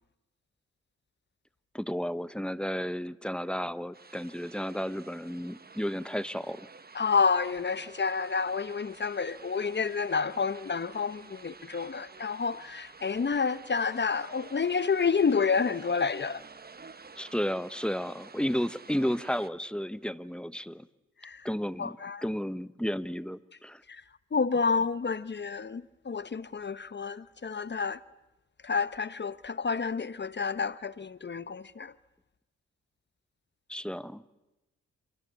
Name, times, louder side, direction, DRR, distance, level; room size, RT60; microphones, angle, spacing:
voice 1, 1.7-6.7 17.2-20.9 21.4-22.0 22.2-23.8 33.7-34.2, equal, 5° left, 0.9 m, -33 dB
sound 1, 3.9-19.5, right 4 dB, 35° right, 1.4 m, -51 dB
voice 2, 6.9-16.4 21.2-21.5 21.8-22.2 23.9-24.0 24.3-28.0 28.6-31.9, left 5 dB, 40° left, 0.9 m, -29 dB
27.0 x 23.0 x 8.4 m
cardioid pair, 70°, 29 cm